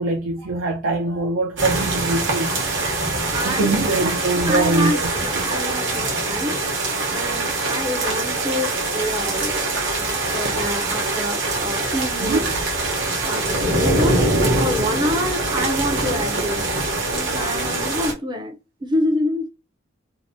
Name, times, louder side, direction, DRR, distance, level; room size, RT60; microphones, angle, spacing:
voice 1, 0.0-3.0 3.4-5.1 5.5-5.6 7.9-8.1 9.2-9.3 12.2-12.5, right 2 dB, 80° right, 0.5 m, -23 dB
sound 1, 1.6-18.1, right 2 dB, 65° right, 0.8 m, -23 dB
voice 2, 3.3-4.2 4.4-9.6 10.0-12.5 12.9-19.5, left 1 dB, 25° right, 0.4 m, -27 dB
2.7 x 2.0 x 2.5 m
head